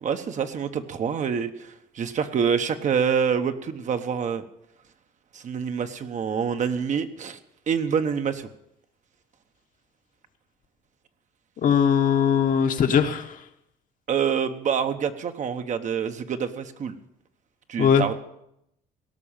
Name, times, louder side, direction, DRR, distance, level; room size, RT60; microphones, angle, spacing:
voice 1, 0.0-4.4 5.3-7.4 7.7-8.5 14.1-17.0 17.7-18.1, right 7 dB, 45° right, 8 dB, 1.1 m, -26 dB
voice 2, 11.6-13.4 17.8-18.0, left 7 dB, 50° left, 6 dB, 1.3 m, -20 dB
17.5 x 6.2 x 8.8 m, 0.80 s
cardioid pair, 110°, 17 cm